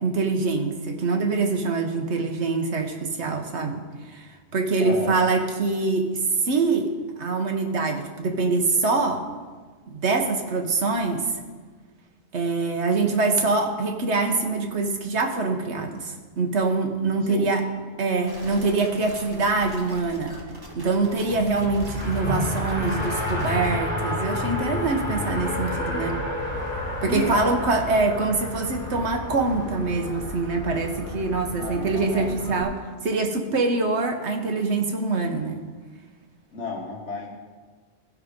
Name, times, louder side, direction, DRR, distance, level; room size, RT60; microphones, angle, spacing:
voice 1, 0.0-6.9 7.2-9.2 9.9-11.3 12.3-17.6 18.0-20.4 20.7-26.2 27.0-35.6, right 3 dB, 70° right, 3 dB, 1.4 m, -24 dB
voice 2, 4.8-5.2 17.3-17.5 27.1-27.4 31.5-32.3 36.5-37.3, left 3 dB, 80° left, -1 dB, 1.7 m, -31 dB
sound 1, 18.3-23.7, equal, 20° right, 1.4 m, -42 dB
Race car auto racing, 21.3-32.6, left 1 dB, 45° left, 3.5 m, -30 dB
15.5 x 5.1 x 5.2 m, 1.4 s
omnidirectional pair, 1.2 m